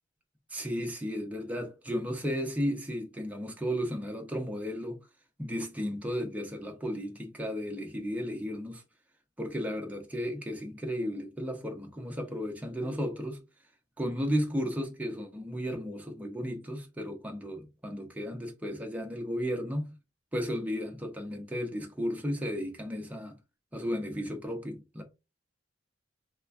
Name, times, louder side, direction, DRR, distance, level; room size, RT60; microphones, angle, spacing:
voice 1, 0.5-5.0 5.4-8.8 9.4-13.4 14.0-19.9 20.3-23.4 23.7-25.0, equal, 10° right, 0.5 m, -34 dB
3.2 x 2.2 x 2.3 m
head